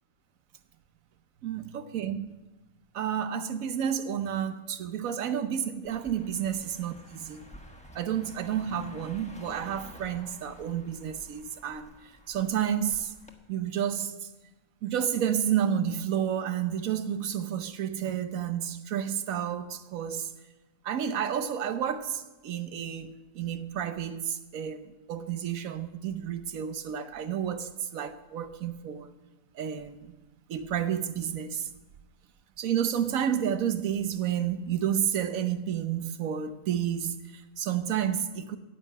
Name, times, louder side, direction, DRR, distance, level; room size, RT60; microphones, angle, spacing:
voice 1, 1.4-2.3 2.9-6.5 6.8-7.4 7.9-13.1 13.5-14.3 14.8-20.3 20.8-29.1 29.5-30.1 30.5-31.7 32.6-38.6, right 9 dB, 80° right, 1.2 m, -30 dB
Car passing by, 5.8-13.3, equal, 5° left, 1.1 m, -50 dB
10.0 x 7.8 x 9.1 m
omnidirectional pair, 1.4 m